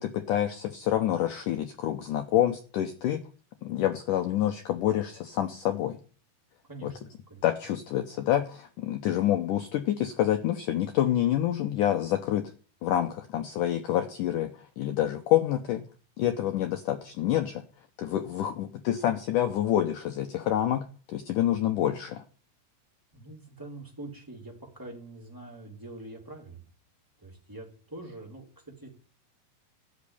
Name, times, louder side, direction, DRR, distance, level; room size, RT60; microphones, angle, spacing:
voice 1, 0.0-3.2 3.6-6.0 6.8-6.9 7.4-12.5 12.8-15.8 16.2-17.6 18.0-22.2, left 12 dB, 80° left, 8 dB, 1.9 m, -27 dB
voice 2, 6.7-7.4 23.1-26.7 27.2-28.9, right 2 dB, 5° right, -1 dB, 3.1 m, -44 dB
14.0 x 6.5 x 9.8 m, 0.41 s
omnidirectional pair, 4.8 m